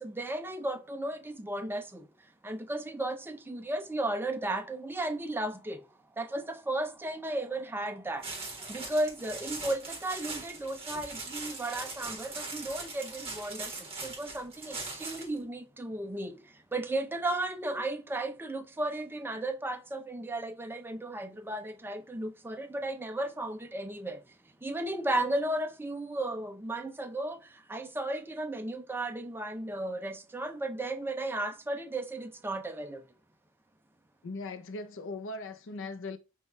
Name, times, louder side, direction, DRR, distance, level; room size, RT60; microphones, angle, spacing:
voice 1, 0.0-1.8 2.4-5.8 6.2-8.2 8.7-13.7 14.0-14.8 15.0-16.3 16.7-24.2 24.6-27.4 27.7-33.0, right 1 dB, 10° right, 0.4 m, -34 dB
sound 1, 8.2-15.4, right 3 dB, 25° right, 1.6 m, -41 dB
voice 2, 34.2-36.2, left 3 dB, 60° left, 0.6 m, -39 dB
5.5 x 2.4 x 3.0 m
head